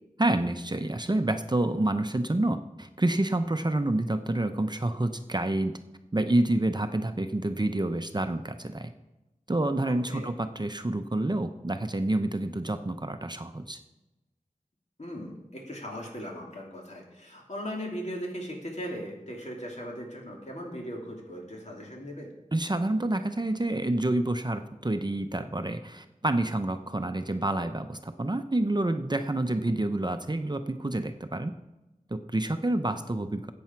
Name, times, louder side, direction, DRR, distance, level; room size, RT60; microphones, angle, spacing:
voice 1, 0.2-5.7 6.1-8.9 9.5-13.8 22.5-31.5 32.1-33.5, right 1 dB, 30° right, 8 dB, 0.7 m, -28 dB
voice 2, 9.8-10.3 15.0-22.3 32.8-33.0, equal, 55° left, -1 dB, 3.0 m, -38 dB
14.0 x 8.6 x 4.6 m, 1.0 s
wide cardioid pair, 45°, 14 cm